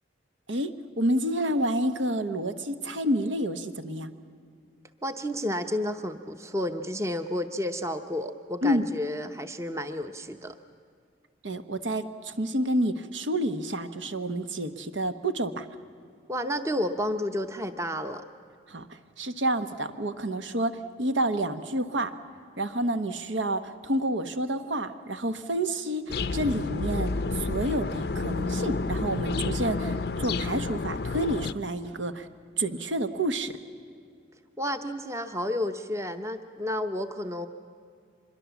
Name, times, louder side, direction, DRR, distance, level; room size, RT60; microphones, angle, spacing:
voice 1, 0.5-4.1 8.6-8.9 11.4-15.7 18.7-18.9 19.2-22.1 22.6-32.3 32.6-33.5, right 1 dB, 80° right, 9 dB, 1.1 m, -29 dB
voice 2, 5.0-10.6 16.3-18.2 34.6-37.5, left 1 dB, 15° right, 8 dB, 0.7 m, -31 dB
sound 1, 26.1-31.5, left 3 dB, 55° left, 0.5 m, -30 dB
25.0 x 21.5 x 7.1 m, 2.3 s
head